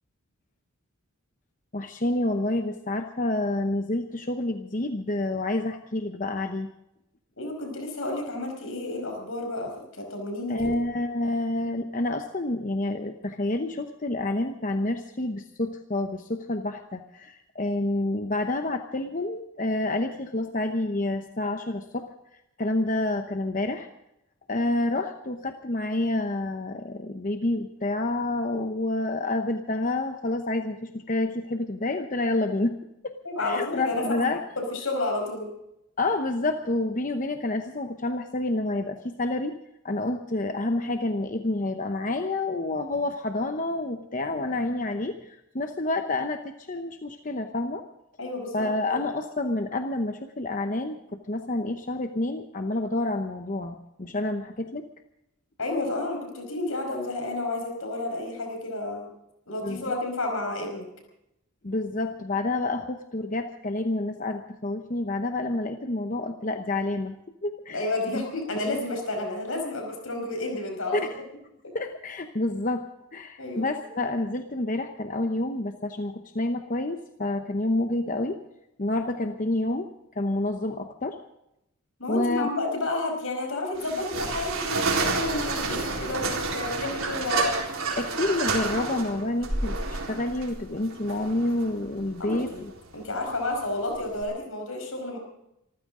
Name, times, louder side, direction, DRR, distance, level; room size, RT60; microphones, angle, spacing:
voice 1, 1.7-6.7 10.5-22.1 22.6-23.9 24.5-32.8 33.0-34.4 36.0-39.6 39.8-47.8 48.5-54.8 59.6-59.9 61.6-67.9 68.6-68.8 70.9-71.0 71.7-78.4 78.8-81.2 82.1-82.5 88.0-92.7, left 2 dB, 35° left, 6 dB, 0.9 m, -28 dB
voice 2, 7.4-10.7 33.3-34.3 34.7-35.5 48.2-48.6 48.9-49.0 55.6-59.1 59.5-60.9 67.7-71.1 71.6-71.7 73.4-73.7 79.2-79.3 82.0-87.6 92.2-92.6 92.9-95.2, left 2 dB, 75° left, 3 dB, 5.2 m, -31 dB
sound 1, 83.8-94.2, right 3 dB, 75° right, 4.1 m, -30 dB
25.5 x 14.5 x 3.8 m, 0.83 s
head